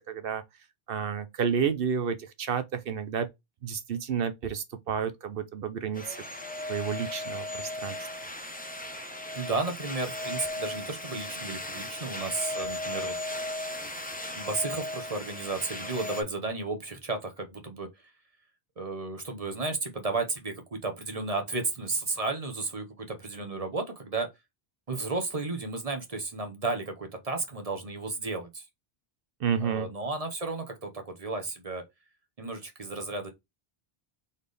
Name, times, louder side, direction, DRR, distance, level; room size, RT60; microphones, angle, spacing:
voice 1, 0.1-0.4 0.9-3.3 3.6-6.2 6.7-8.0 29.4-29.9, right 7 dB, 65° right, 0.8 m, -30 dB
sound 1, 5.9-16.2, left 1 dB, 10° left, 0.6 m, -36 dB
voice 2, 9.3-13.2 14.3-17.9 18.8-24.3 24.9-28.6 29.6-31.8 32.4-33.3, right 3 dB, 35° right, 1.0 m, -33 dB
4.1 x 3.5 x 3.3 m
omnidirectional pair, 1.1 m